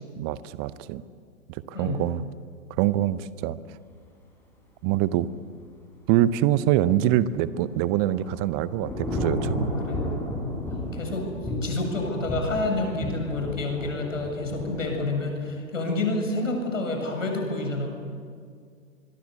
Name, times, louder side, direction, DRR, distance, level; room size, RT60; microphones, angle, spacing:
voice 1, 0.2-1.0 1.5-2.2 2.8-3.6 4.8-5.3 6.1-9.7, right 12 dB, 20° right, 17 dB, 0.6 m, -24 dB
Thunder / Rain, 7.6-14.9, left 1 dB, 5° left, 5.9 m, -32 dB
voice 2, 9.8-10.1 10.9-17.9, left 2 dB, 70° left, 3 dB, 7.5 m, -29 dB
25.5 x 22.5 x 8.2 m, 2.1 s
figure-of-eight pair, 120°, 40 cm